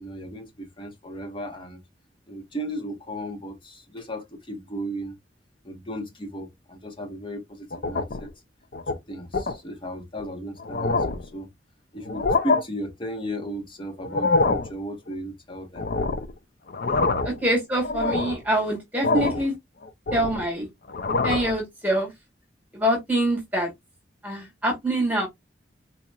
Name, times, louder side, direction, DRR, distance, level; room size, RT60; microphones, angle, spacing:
voice 1, 0.0-1.8 2.3-5.2 5.6-8.3 9.1-11.5 11.9-15.8, equal, 25° left, 0.9 m, -35 dB
sound 1, 7.7-8.3 8.7-8.9 9.3-9.6 10.2-10.3 10.6-11.3 12.0-12.6 14.0-14.7 15.8-16.3 16.7-17.4 17.8-18.4 19.0-19.5 19.8-20.5 20.9-21.5, left 3 dB, 55° left, 0.5 m, -25 dB
voice 2, 17.2-19.5 20.1-20.7 21.2-22.1 22.7-23.7 24.2-25.3, right 1 dB, 10° right, 1.5 m, -25 dB
4.1 x 2.9 x 2.3 m
head